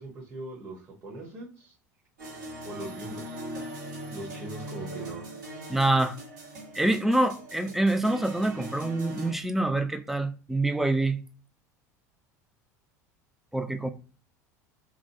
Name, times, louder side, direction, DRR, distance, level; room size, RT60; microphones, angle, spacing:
voice 1, 0.0-1.7 2.6-3.4 4.1-5.3, right 2 dB, 25° right, 0.9 m, -41 dB
sound 1, 2.2-9.3, right 1 dB, 75° right, 1.2 m, -41 dB
voice 2, 5.7-6.2 6.7-11.2 13.5-13.9, right 2 dB, 5° right, 0.3 m, -26 dB
2.5 x 2.0 x 2.9 m
figure-of-eight pair, 70°, 9 cm